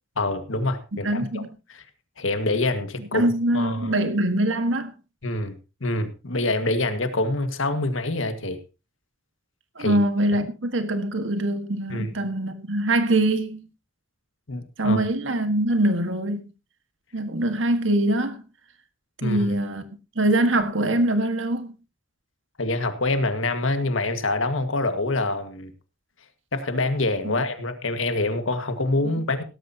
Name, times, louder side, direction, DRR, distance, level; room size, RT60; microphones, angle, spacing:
voice 1, 0.2-1.4 1.7-1.8 2.2-3.3 3.5-4.0 5.2-8.6 9.8-10.0 11.9-12.1 14.5-15.0 19.2-19.5 22.6-25.7 26.5-29.4, left 2 dB, 85° left, 1.8 m, -26 dB
voice 2, 1.0-1.5 3.0-4.9 9.8-13.7 14.8-16.4 17.1-18.4 19.2-19.8 20.2-21.8 27.2-27.4 29.2-29.3, right 1 dB, 75° right, 1.7 m, -23 dB
17.0 x 13.5 x 2.9 m
head